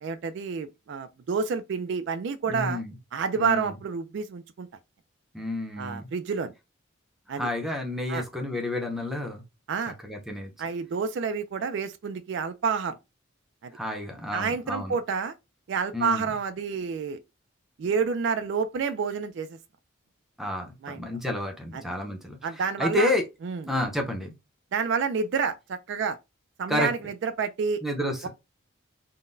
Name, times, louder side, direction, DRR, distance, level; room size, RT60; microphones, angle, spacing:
voice 1, 0.0-2.8 3.1-4.7 5.8-6.5 7.3-7.5 8.1-8.2 9.7-10.0 10.6-13.0 13.6-13.7 14.3-15.3 15.7-17.2 17.8-19.6 20.8-21.0 21.7-21.8 22.4-23.1 23.4-23.7 24.7-26.2 26.6-27.8, right 5 dB, 55° right, 0.3 m, -29 dB
voice 2, 2.5-2.9 3.4-3.7 5.3-6.1 7.3-9.4 10.0-10.5 13.7-15.0 15.9-16.3 20.4-22.4 22.8-23.2 23.7-24.3 26.7-26.9 27.8-28.3, left 1 dB, ahead, 0.6 m, -30 dB
3.8 x 2.1 x 2.5 m
head